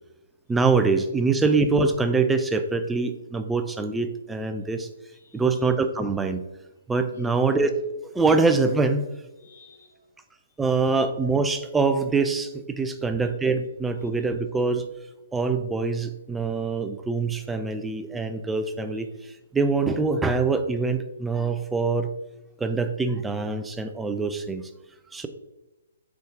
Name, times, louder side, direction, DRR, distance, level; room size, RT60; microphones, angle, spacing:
voice 1, 0.5-4.9 5.3-6.4 6.9-7.7 8.1-9.1 10.6-14.9 15.3-22.1 22.6-24.7 25.1-25.3, right 4 dB, 10° right, 8 dB, 0.3 m, -24 dB
voice 2, 4.8-5.7 7.1-7.5 9.4-10.1 10.5-10.9 13.0-13.3 14.0-14.3 18.9-19.0, left 3 dB, 65° left, -3 dB, 1.4 m, -54 dB
3.8 x 3.8 x 3.5 m, 1.0 s
figure-of-eight pair, 130°, 0 cm